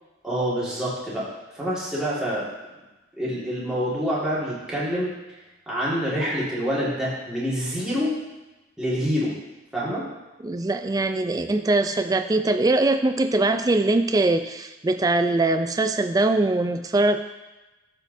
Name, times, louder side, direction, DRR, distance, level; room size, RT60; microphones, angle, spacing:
voice 1, 0.2-1.3 1.5-2.4 3.2-5.1 5.7-8.2 8.8-9.3 9.7-10.0, equal, 5° right, -9 dB, 1.8 m, -26 dB
voice 2, 10.4-17.2, right 2 dB, 20° right, 8 dB, 0.3 m, -22 dB
12.5 x 4.5 x 2.6 m, 1.1 s
head